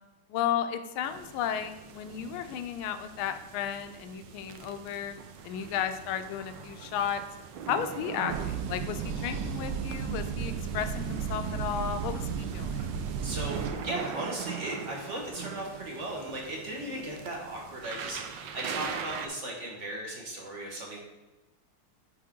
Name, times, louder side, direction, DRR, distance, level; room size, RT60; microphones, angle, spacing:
voice 1, 0.3-5.2 5.4-7.2 7.7-12.9 16.8-16.9, left 9 dB, 80° left, 9 dB, 1.4 m, -33 dB
sound 1, 1.0-19.3, right 7 dB, 70° right, 1.0 m, -42 dB
sound 2, 8.3-13.7, right 7 dB, 90° right, 1.6 m, -33 dB
voice 2, 13.2-21.0, right 1 dB, 40° right, -2 dB, 1.2 m, -37 dB
9.5 x 3.7 x 3.6 m, 1.1 s
omnidirectional pair, 2.4 m